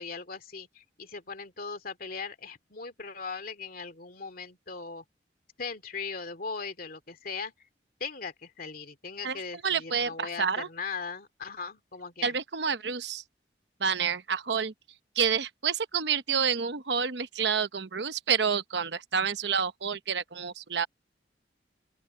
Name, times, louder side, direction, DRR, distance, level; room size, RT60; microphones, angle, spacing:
voice 1, 0.0-5.0 5.6-7.5 8.0-12.4, left 5 dB, 55° left, 2.5 m, -39 dB
voice 2, 9.2-10.7 12.2-13.2 13.8-14.7 15.2-20.9, right 6 dB, 75° right, 0.9 m, -29 dB
open air
head